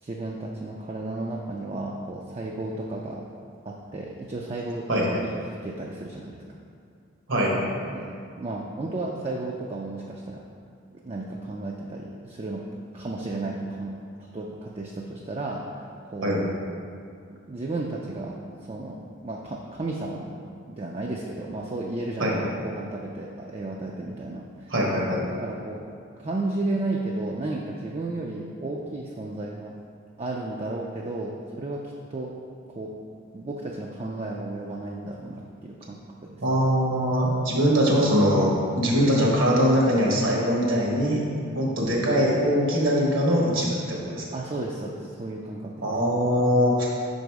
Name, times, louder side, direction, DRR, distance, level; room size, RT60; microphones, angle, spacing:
voice 1, 0.0-3.2 3.6-5.3 5.6-6.4 7.9-10.4 11.0-12.7 12.9-16.4 17.3-24.7 25.4-25.8 26.2-29.7 30.2-31.8 32.1-32.3 32.7-32.9 33.3-36.4 41.4-41.7 44.3-45.9, right 2 dB, 30° right, -2 dB, 0.4 m, -33 dB
voice 2, 24.7-25.2 36.4-41.3 41.5-44.3 45.8-46.8, equal, 75° right, -3 dB, 1.3 m, -22 dB
5.8 x 4.0 x 4.7 m, 2.4 s
head